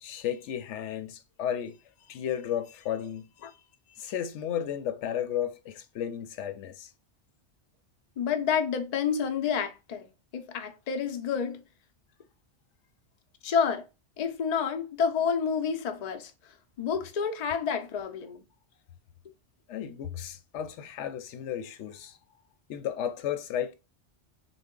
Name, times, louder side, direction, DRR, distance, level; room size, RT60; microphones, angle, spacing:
voice 1, 0.0-3.6 3.9-6.9 19.7-22.2 22.7-23.7, left 10 dB, 90° left, 0.9 m, -34 dB
voice 2, 8.2-10.1 10.3-11.6 13.4-13.8 14.2-16.3 16.8-18.4, left 6 dB, 50° left, 0.5 m, -29 dB
3.4 x 2.2 x 3.6 m
omnidirectional pair, 1.2 m